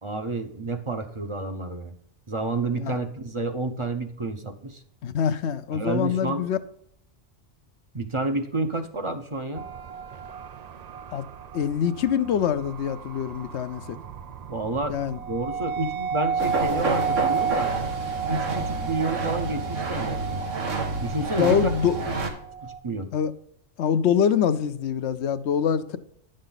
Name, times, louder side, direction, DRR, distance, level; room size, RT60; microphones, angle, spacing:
voice 1, 0.0-1.9 2.3-4.8 5.7-6.4 7.9-9.6 14.5-15.0 15.3-17.7 18.3-20.4 21.0-21.7 22.6-23.1, right 2 dB, 30° right, 0.7 m, -30 dB
voice 2, 5.0-6.6 11.1-11.2 11.5-14.0 14.9-15.2 21.4-22.0 23.1-23.3 23.8-26.0, left 8 dB, 70° left, 0.9 m, -24 dB
sound 1, 9.5-22.8, right 6 dB, 65° right, 0.4 m, -33 dB
sound 2, 16.4-22.3, right 3 dB, 90° right, 1.7 m, -29 dB
10.5 x 6.5 x 3.9 m
omnidirectional pair, 1.3 m